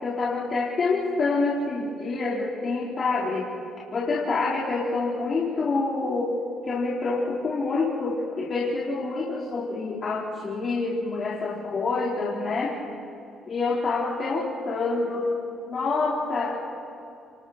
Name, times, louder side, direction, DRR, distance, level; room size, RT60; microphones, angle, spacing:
voice 1, 0.0-3.5 3.9-6.4 6.6-12.7 13.5-15.3 15.7-16.6, left 3 dB, 45° left, -6 dB, 4.3 m, -27 dB
28.5 x 23.0 x 4.4 m, 2.6 s
supercardioid pair, 80°, 0 cm